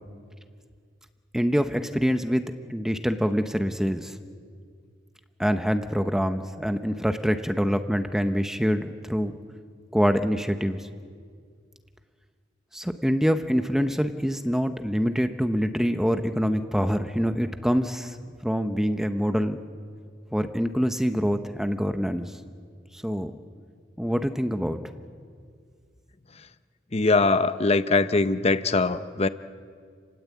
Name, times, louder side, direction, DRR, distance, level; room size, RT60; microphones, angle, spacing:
voice 1, 1.3-4.2 5.4-9.3 9.9-10.9 12.7-18.2 18.4-19.6 20.3-22.4 22.9-23.3 24.0-24.8, equal, 5° right, 7 dB, 0.8 m, -25 dB
voice 2, 26.9-29.3, left 3 dB, 35° left, 12 dB, 0.8 m, -22 dB
30.0 x 20.0 x 8.4 m, 2.1 s
head